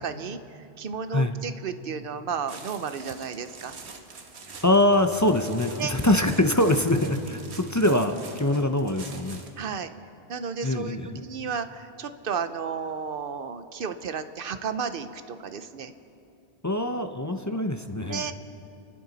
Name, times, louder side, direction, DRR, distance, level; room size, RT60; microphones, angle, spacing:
voice 1, 0.0-3.8 5.8-5.9 9.6-9.9 10.3-15.9 18.0-18.3, right 6 dB, 60° right, 10 dB, 0.9 m, -33 dB
sound 1, 2.5-9.6, right 4 dB, 80° right, 1.4 m, -45 dB
Bowed string instrument, 4.4-9.2, right 2 dB, 25° right, 1.1 m, -45 dB
voice 2, 4.6-9.4 10.6-11.2 16.6-18.2, left 1 dB, 20° left, 7 dB, 0.5 m, -23 dB
29.5 x 11.0 x 4.0 m, 2.7 s
omnidirectional pair, 1.1 m